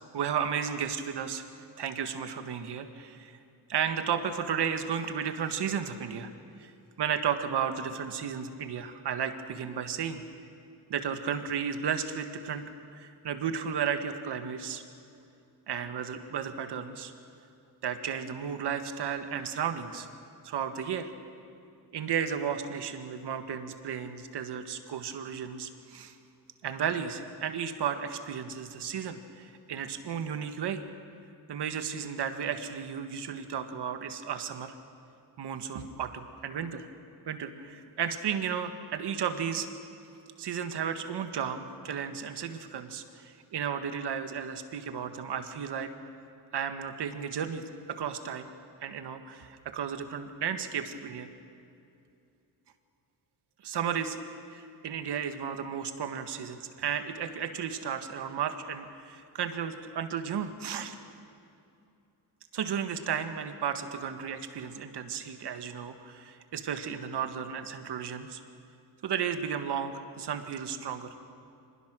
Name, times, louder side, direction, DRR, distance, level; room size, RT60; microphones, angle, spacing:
voice 1, 0.1-1.4 1.8-3.4 3.7-6.3 6.6-6.7 7.0-10.2 10.9-12.6 12.9-14.8 15.7-17.1 17.8-20.1 20.4-21.1 21.9-26.2 26.6-30.8 31.5-34.7 35.4-36.9 37.3-39.7 40.4-45.9 46.5-47.6 47.9-48.5 48.8-51.3 53.6-54.2 54.5-60.9 62.5-68.4 69.0-71.2, right 7 dB, 70° right, 8 dB, 1.7 m, -33 dB
25.0 x 20.0 x 6.2 m, 2.7 s
cardioid pair, 105°, 42 cm